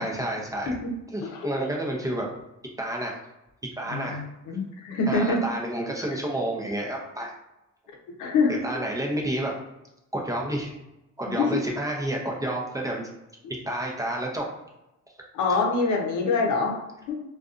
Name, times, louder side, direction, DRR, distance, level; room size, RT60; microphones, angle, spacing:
voice 1, 0.0-0.7 1.1-2.3 2.8-3.2 3.8-4.2 5.1-7.3 8.6-9.5 10.1-10.7 11.2-13.1 13.6-14.5, right 1 dB, 10° right, -2 dB, 0.6 m, -29 dB
voice 2, 3.9-5.4 8.2-8.6 11.3-11.6 15.3-16.8 17.1-17.2, left 3 dB, 85° left, 0 dB, 0.7 m, -25 dB
2.6 x 2.4 x 2.4 m, 0.92 s
cardioid pair, 90°, 30 cm